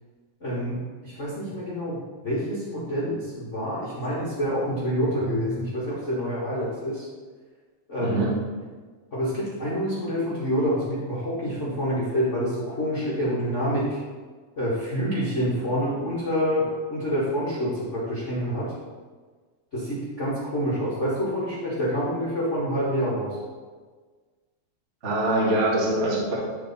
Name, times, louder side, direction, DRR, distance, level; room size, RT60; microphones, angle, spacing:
voice 1, 0.4-2.0 2.2-7.0 7.9-8.3 9.1-14.0 14.5-18.7 19.7-23.4, equal, 60° left, -9 dB, 0.7 m, -27 dB
voice 2, 25.0-26.4, right 1 dB, 30° right, -6 dB, 1.3 m, -23 dB
12.0 x 4.2 x 4.3 m, 1.5 s
omnidirectional pair, 4.6 m